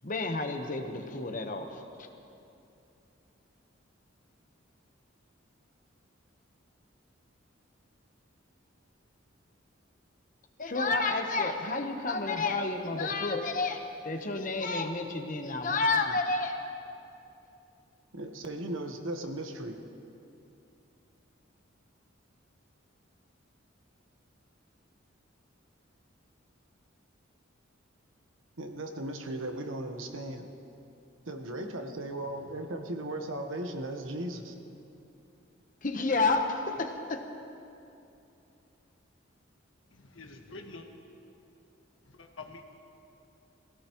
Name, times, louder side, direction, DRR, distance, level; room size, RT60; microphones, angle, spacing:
voice 1, 0.0-2.1 10.6-16.6 35.8-37.2, left 3 dB, 40° left, 5 dB, 1.0 m, -30 dB
voice 2, 18.1-19.8 28.6-30.5 31.3-34.5, right 1 dB, 75° right, 5 dB, 1.2 m, -37 dB
voice 3, 39.9-40.9 42.0-42.6, left 3 dB, 75° left, 3 dB, 1.5 m, -47 dB
23.0 x 16.5 x 3.1 m, 2.7 s
head